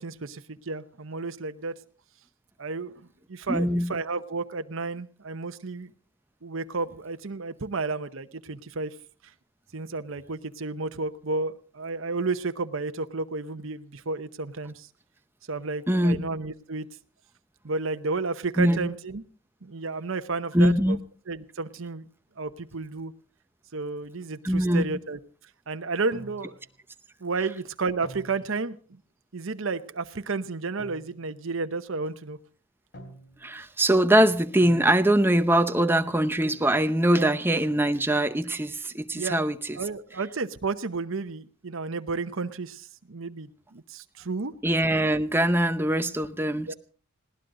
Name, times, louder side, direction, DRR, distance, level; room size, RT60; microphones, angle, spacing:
voice 1, 0.0-1.8 2.6-5.9 6.4-8.9 9.7-14.9 15.5-16.9 17.6-19.2 19.6-21.0 21.3-22.1 22.4-23.1 23.7-25.2 25.7-26.6 27.2-29.0 29.3-32.4 37.1-37.4 39.1-39.4 39.8-44.5 46.7-46.8, right 3 dB, 65° right, 0.9 m, -32 dB
voice 2, 3.5-3.9 15.9-16.3 18.6-18.9 20.5-21.0 24.4-24.8 33.4-39.6 44.6-46.7, right 1 dB, 10° right, 0.8 m, -22 dB
sound 1, 26.1-26.7 28.0-28.7 30.8-31.3 32.9-33.5 34.6-35.4 36.4-37.0, right 1 dB, 50° left, 3.2 m, -47 dB
20.0 x 17.0 x 3.8 m
head